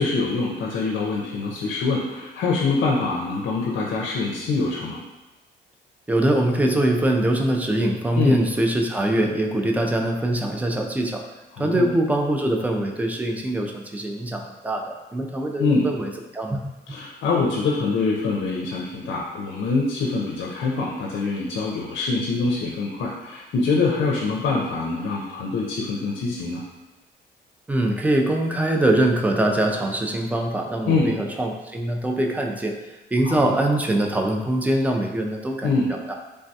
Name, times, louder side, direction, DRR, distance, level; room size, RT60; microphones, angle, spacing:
voice 1, 0.0-5.0 8.2-8.4 11.5-11.9 15.6-15.9 16.9-26.6 30.9-31.2 33.2-33.5 35.6-35.9, left 3 dB, 70° left, -3 dB, 0.5 m, -24 dB
voice 2, 6.1-11.2 11.6-16.6 27.7-32.8 33.1-36.1, right 1 dB, 10° right, 2 dB, 0.3 m, -23 dB
3.3 x 2.2 x 2.6 m, 1.1 s
cardioid pair, 90°, 20 cm